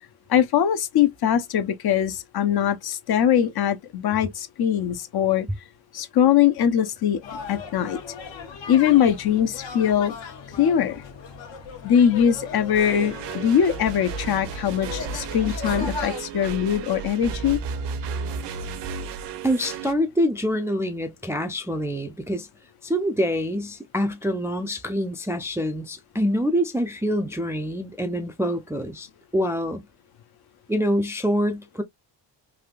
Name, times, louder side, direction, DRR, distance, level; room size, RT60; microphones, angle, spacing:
voice 1, 0.3-5.5 5.9-7.2 7.5-8.0 8.7-10.1 10.6-11.0 11.8-17.6, left 9 dB, 55° left, 0.7 m, -21 dB
sound 1, 7.2-16.2, left 5 dB, 70° left, 1.1 m, -37 dB
sound 2, 12.7-19.9, right 5 dB, 65° right, 0.7 m, -33 dB
voice 2, 19.4-22.5 22.8-29.1 29.3-29.8 30.7-31.8, equal, 5° right, 0.3 m, -25 dB
3.4 x 2.5 x 2.3 m
cardioid pair, 110°, 46 cm